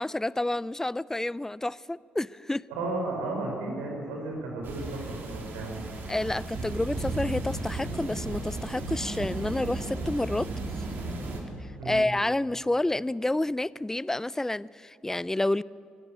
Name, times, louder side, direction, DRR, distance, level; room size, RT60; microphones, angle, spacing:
voice 1, 0.0-2.6 6.1-10.5 11.8-15.6, left 1 dB, 10° left, 0.5 m, -29 dB
voice 2, 2.7-5.8 11.8-12.0, right 2 dB, 90° right, 5.0 m, -34 dB
sound 1, 4.6-11.4, right 2 dB, 60° right, 3.9 m, -34 dB
24.0 x 13.0 x 8.9 m
hypercardioid pair, 50°, 4 cm